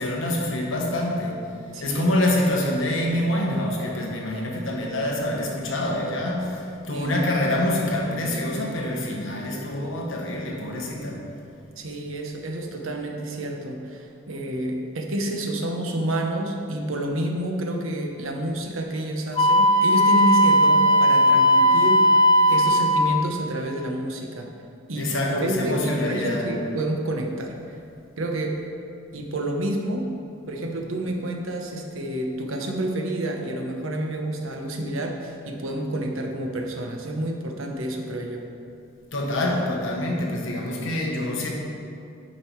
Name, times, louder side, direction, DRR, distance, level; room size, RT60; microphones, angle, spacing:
voice 1, 0.0-1.4 1.8-11.2 24.9-26.5 39.1-41.5, left 1 dB, 65° left, -1 dB, 1.3 m, -26 dB
voice 2, 1.7-2.1 3.5-3.6 6.9-7.2 11.8-22.0 22.5-24.5 24.9-27.8 28.2-28.6 29.1-30.1 30.5-38.4, right 1 dB, 70° right, 2 dB, 0.9 m, -29 dB
Wind instrument woodwind instrument, 19.4-23.1, equal, 25° left, 0.4 m, -17 dB
8.8 x 5.3 x 4.6 m, 2.5 s
head